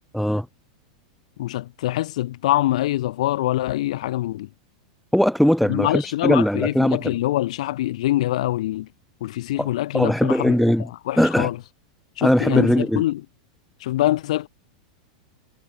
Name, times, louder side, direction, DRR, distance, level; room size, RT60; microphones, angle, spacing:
voice 1, 0.1-0.5 5.1-7.2 9.6-10.9 11.2-11.5 12.2-13.0, equal, ahead, 6.0 m, -20 dB
voice 2, 1.4-4.5 5.7-8.9 9.2-10.5 11.1-11.6 12.2-13.2 13.8-14.5, left 15 dB, 75° left, 2.5 m, -24 dB
supercardioid pair, 145°, 4 cm